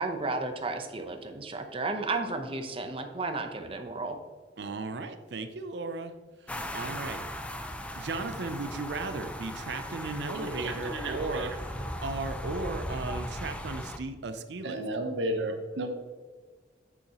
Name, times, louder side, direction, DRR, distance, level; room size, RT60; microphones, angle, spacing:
voice 1, 0.0-4.2, right 3 dB, 30° right, 5 dB, 0.7 m, -33 dB
voice 2, 4.6-6.1 6.7-7.3 8.0-11.5 12.0-14.8, right 3 dB, 65° right, 9 dB, 0.5 m, -35 dB
sound 1, 6.5-14.0, left 1 dB, 5° left, 0.4 m, -38 dB
voice 3, 10.2-11.5 11.7-11.8 14.6-15.9, right 1 dB, 80° right, 5 dB, 1.0 m, -33 dB
8.3 x 6.6 x 2.9 m, 1.4 s
head